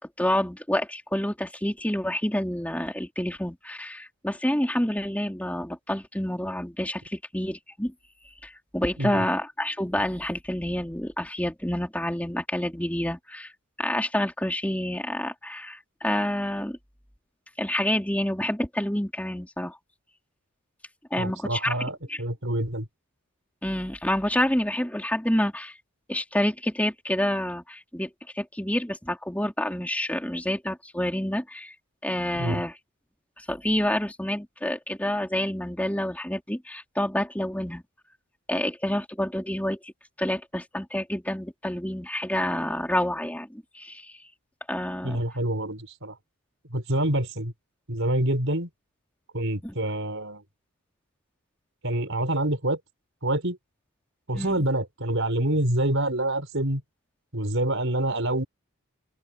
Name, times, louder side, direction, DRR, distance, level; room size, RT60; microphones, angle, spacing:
voice 1, 0.0-7.9 8.4-13.5 13.8-16.8 17.6-19.8 21.1-22.2 23.6-25.7 26.1-28.1 28.3-31.7 32.0-32.7 33.4-37.8 38.5-39.9 40.2-44.2 44.7-45.2 49.6-49.7 54.3-54.6, left 1 dB, 5° left, 3.9 m, -28 dB
voice 2, 21.2-22.9 32.3-32.6 45.0-46.1 46.7-47.5 47.9-48.7 49.3-50.4 51.8-52.8 53.2-53.6 54.3-56.8 57.3-58.4, right 1 dB, 60° right, 6.1 m, -26 dB
open air
head